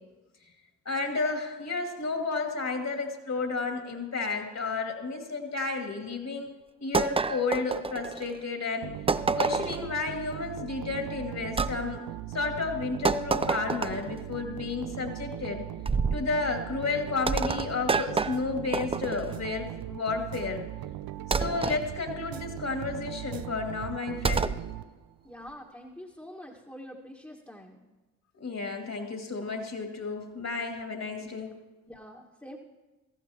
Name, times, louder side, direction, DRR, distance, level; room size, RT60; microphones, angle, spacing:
voice 1, 0.9-6.5 6.8-8.9 9.4-12.0 12.3-15.6 16.1-20.6 21.3-24.5 28.3-31.5, left 4 dB, 45° left, 3 dB, 2.5 m, -32 dB
sound 1, 6.9-8.4 9.1-9.9 11.6-11.8 13.0-14.2 15.9-16.3 17.3-19.4 21.3-21.8 24.2-24.6, right 4 dB, 15° right, 0.4 m, -28 dB
sound 2, 8.8-25.3, right 13 dB, 65° right, 0.6 m, -39 dB
voice 2, 25.2-27.8 31.2-31.3 31.9-32.6, equal, 5° left, -2 dB, 1.6 m, -45 dB
17.0 x 14.5 x 3.0 m, 1.2 s
hypercardioid pair, 40°, 39 cm